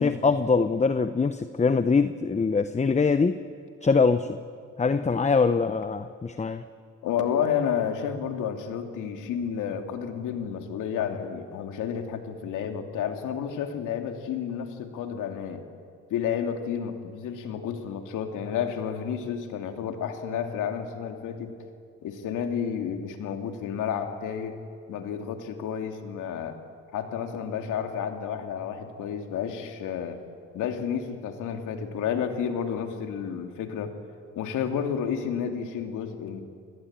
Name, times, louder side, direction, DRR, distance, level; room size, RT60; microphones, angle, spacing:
voice 1, 0.0-3.4 3.8-4.4 4.8-6.7, left 4 dB, 25° left, 11 dB, 0.9 m, -23 dB
voice 2, 7.0-15.6 16.1-21.5 22.0-24.6 24.9-26.6 26.9-30.2 30.5-33.9 34.3-36.4, left 8 dB, 85° left, 5 dB, 2.7 m, -31 dB
29.0 x 20.0 x 8.9 m, 2.2 s
cardioid pair, 90°, 30 cm